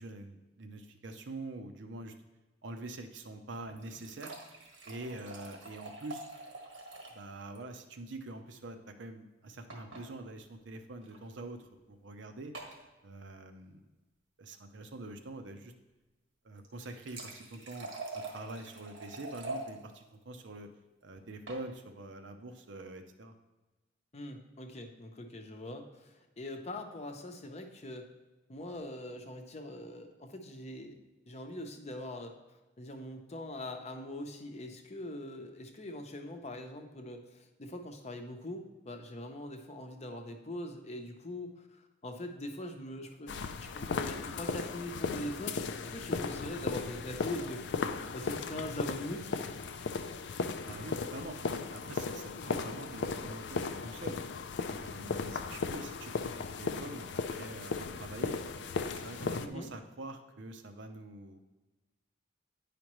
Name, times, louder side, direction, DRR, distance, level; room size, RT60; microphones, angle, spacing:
voice 1, 0.0-2.1 2.6-4.4 4.9-6.2 7.1-12.5 13.0-13.8 14.4-15.7 16.4-20.7 21.0-23.3 50.6-51.4 51.7-54.2 54.7-58.4 58.8-61.4, right 2 dB, 70° right, 7 dB, 0.7 m, -45 dB
sound 1, 3.5-7.3 7.5-7.6 7.9-8.0 9.7-10.1 11.0-11.2 12.5-12.8 16.6-19.7 21.2-21.6, right 2 dB, 90° right, 1.4 m, -45 dB
voice 2, 24.1-28.0 28.5-30.9 31.3-32.4 32.8-43.3 43.6-49.3 52.4-52.6 59.4-59.7, left 1 dB, 35° left, 4 dB, 0.7 m, -42 dB
sound 2, 43.3-59.5, left 4 dB, 65° left, 0.4 m, -36 dB
9.7 x 5.0 x 3.1 m, 1.1 s
head